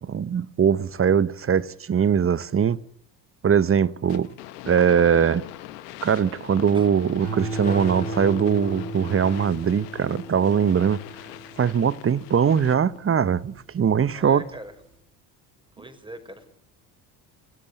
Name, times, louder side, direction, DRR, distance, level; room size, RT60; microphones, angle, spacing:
voice 1, 0.0-2.8 3.4-4.3 4.6-5.4 6.0-11.0 11.6-14.4, right 7 dB, 30° right, 1.0 m, -21 dB
sound 1, 4.1-13.0, left 14 dB, 85° left, 1.8 m, -42 dB
sound 2, 7.2-13.7 14.2-14.7, right 2 dB, 75° right, 7.6 m, -36 dB
sound 3, 7.4-11.4, left 3 dB, 15° left, 4.4 m, -43 dB
voice 2, 14.1-14.7 15.8-16.5, right 1 dB, 10° right, 5.6 m, -41 dB
27.5 x 16.5 x 8.3 m
supercardioid pair, 75°, 46 cm